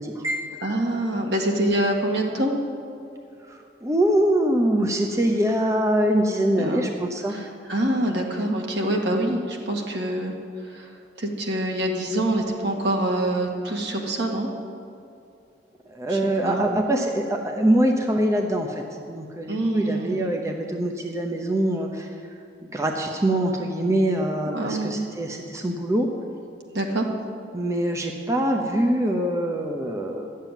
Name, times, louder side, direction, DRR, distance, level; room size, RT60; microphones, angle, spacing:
voice 1, 0.0-0.7 3.5-7.4 15.9-22.1 22.6-26.1 27.5-30.3, right 1 dB, 15° right, 2 dB, 0.8 m, -24 dB
voice 2, 0.6-2.6 6.5-6.9 7.3-10.3 10.7-10.9 11.2-14.5 16.1-16.7 19.5-20.3 24.5-25.0 26.7-27.1, right 1 dB, 65° right, 1 dB, 1.8 m, -25 dB
12.5 x 7.5 x 9.0 m, 2.6 s
head